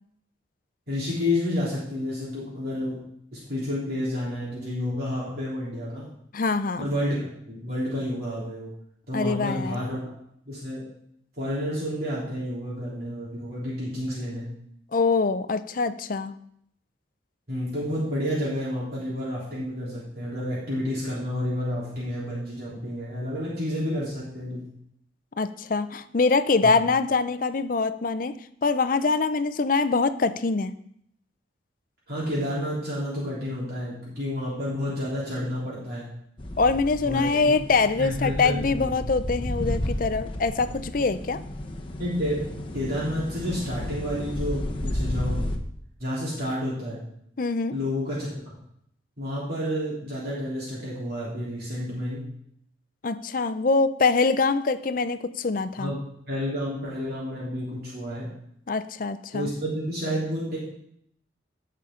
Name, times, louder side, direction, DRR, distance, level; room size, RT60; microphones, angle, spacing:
voice 1, 0.9-3.0 3.3-6.1 6.8-8.7 9.1-10.2 10.4-10.9 11.3-14.5 17.5-24.7 26.6-26.7 32.1-36.1 37.0-37.6 38.0-38.9 42.0-45.5 46.0-47.0 47.7-48.3 49.2-52.2 55.8-58.3 59.3-60.6, left 1 dB, 50° right, -7 dB, 3.4 m, -30 dB
voice 2, 6.3-6.9 9.1-9.8 14.9-16.3 25.4-28.3 28.6-30.7 36.6-41.4 47.4-47.7 53.0-55.9 58.7-59.5, left 4 dB, 45° left, 12 dB, 0.5 m, -24 dB
sound 1, 36.4-45.6, left 1 dB, 25° left, 1.0 m, -32 dB
16.5 x 5.7 x 3.8 m, 0.70 s
head